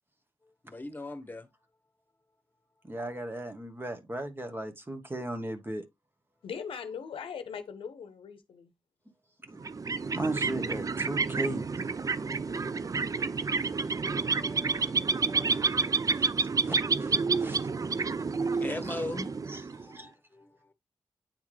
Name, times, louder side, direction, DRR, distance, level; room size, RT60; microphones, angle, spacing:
voice 1, 0.6-1.5 12.1-16.3 16.6-16.9 18.2-19.3 19.7-20.7, left 2 dB, 20° left, 1.2 m, -43 dB
voice 2, 2.8-5.8 9.5-9.6 10.1-11.6 12.3-12.4 15.5-15.7 16.7-17.7 19.5-19.6 19.9-20.1, right 1 dB, 25° right, 1.1 m, -36 dB
voice 3, 6.4-8.7, left 6 dB, 85° left, 0.7 m, -40 dB
sound 1, 9.6-20.0, right 4 dB, 40° right, 0.4 m, -29 dB
8.8 x 3.5 x 3.1 m
cardioid pair, 45°, 9 cm